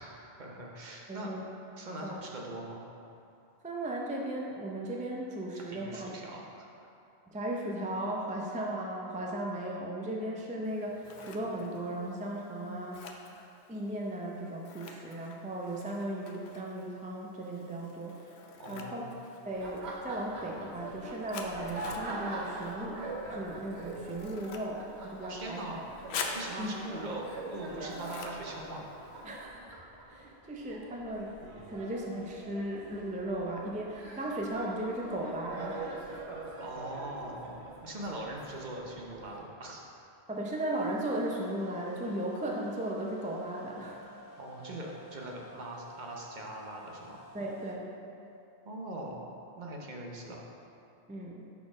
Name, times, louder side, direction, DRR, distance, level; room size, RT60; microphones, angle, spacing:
voice 1, 0.0-1.4 1.7-2.9 5.7-6.7 18.6-19.2 25.3-25.8 26.3-28.8 36.6-39.8 44.4-47.2 48.6-49.3 49.6-50.4, right 1 dB, 50° right, -1 dB, 0.8 m, -41 dB
voice 2, 1.1-1.4 2.0-2.2 3.6-6.2 7.3-13.0 13.7-18.3 18.7-19.0 19.5-25.8 26.6-26.8 27.8-28.0 29.2-29.8 30.1-31.4 31.7-35.9 40.3-44.1 47.3-47.9 51.1-51.5, right 1 dB, 15° right, -2 dB, 0.3 m, -36 dB
Scissors, 10.6-29.4, left 5 dB, 80° left, 0.8 m, -47 dB
Laughter, 19.5-39.4, right 2 dB, 80° right, 1.1 m, -43 dB
sound 1, 40.7-47.7, left 2 dB, 30° left, 0.6 m, -54 dB
5.8 x 4.2 x 4.8 m, 2.7 s
omnidirectional pair, 1.1 m